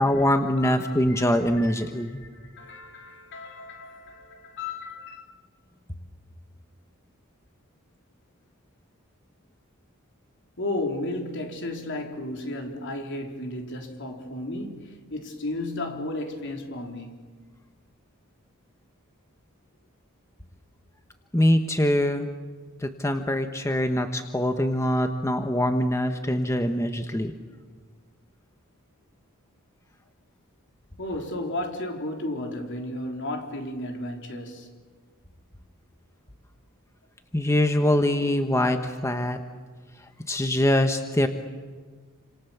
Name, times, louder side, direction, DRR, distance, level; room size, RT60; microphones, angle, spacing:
voice 1, 0.0-2.2 21.3-22.3 22.8-27.3 37.3-39.4 40.3-41.3, left 1 dB, 15° left, 1.2 m, -23 dB
voice 2, 0.6-5.2 10.6-17.2 31.0-34.7, left 1 dB, 60° left, 3.8 m, -34 dB
29.5 x 26.5 x 7.2 m
head